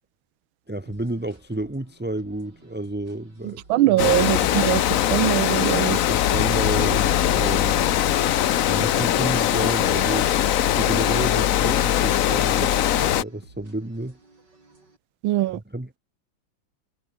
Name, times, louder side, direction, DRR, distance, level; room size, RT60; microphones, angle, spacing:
voice 1, 0.7-4.1 5.9-7.8 8.7-10.3 10.8-14.2 15.5-16.0, right 1 dB, 5° right, 0.8 m, -31 dB
sound 1, 0.9-15.0, right 3 dB, 55° right, 5.7 m, -53 dB
voice 2, 3.4-6.0 15.2-15.6, right 15 dB, 80° right, 1.5 m, -22 dB
Water, 4.0-13.2, left 11 dB, 65° left, 0.8 m, -21 dB
sound 2, 5.4-10.4, left 6 dB, 50° left, 2.5 m, -35 dB
omnidirectional pair, 2.2 m